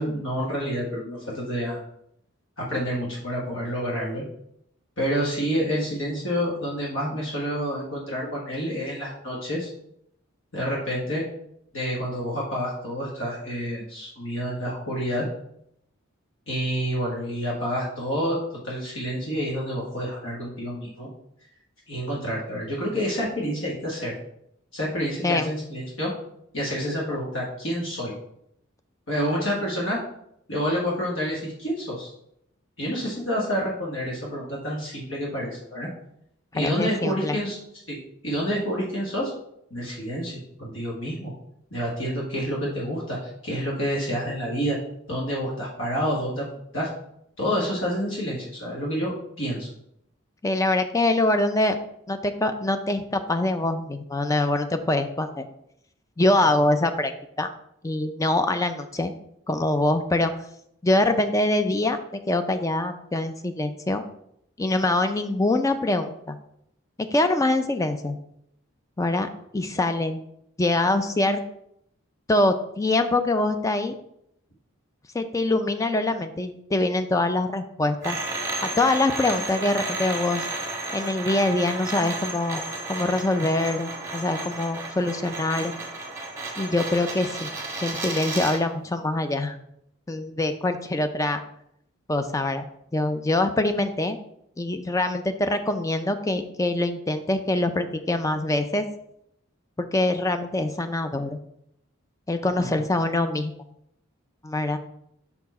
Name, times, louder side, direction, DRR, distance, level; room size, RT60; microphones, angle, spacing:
voice 1, 0.0-1.8 2.6-4.2 5.0-9.7 10.5-11.2 11.7-15.2 16.5-18.4 18.6-21.1 21.9-24.1 24.7-26.1 26.5-28.1 29.1-30.0 30.5-32.1 32.8-35.9 36.5-37.6 37.9-38.0 38.2-39.3 39.7-41.3 41.7-44.8 45.1-46.5 46.7-46.9 47.4-49.7 102.6-102.7, equal, 65° left, -5 dB, 1.4 m, -28 dB
voice 2, 36.5-37.4 50.4-51.8 52.1-55.5 56.2-57.1 57.4-57.5 57.8-59.1 59.5-60.3 60.8-62.0 62.3-64.0 64.6-66.4 67.1-68.2 69.0-69.3 69.5-70.2 70.6-71.4 72.3-73.9 75.1-78.2 78.6-80.5 80.9-82.6 82.9-85.7 86.6-87.5 87.8-89.6 90.1-91.4 92.1-94.2 94.6-98.8 99.8-101.4 102.3-103.5 104.4-104.8, left 2 dB, 15° left, 8 dB, 0.4 m, -24 dB
sound 1, 78.0-88.7, right 2 dB, 15° right, 1.2 m, -33 dB
5.6 x 4.5 x 4.1 m, 0.75 s
head